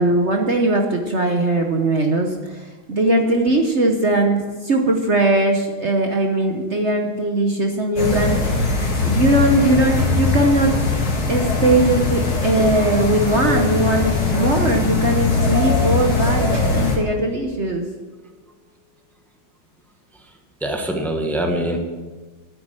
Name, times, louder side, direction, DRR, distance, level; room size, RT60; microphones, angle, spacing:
voice 1, 0.0-10.7 11.3-17.9, right 1 dB, 45° right, 3 dB, 0.9 m, -20 dB
sound 1, 8.0-17.0, left 3 dB, 75° left, 3.1 m, -21 dB
sound 2, 12.6-17.1, left 5 dB, 20° right, 3.4 m, -33 dB
voice 2, 20.6-21.8, right 1 dB, ahead, 3 dB, 0.4 m, -23 dB
9.6 x 8.5 x 7.6 m, 1.3 s
omnidirectional pair, 2.3 m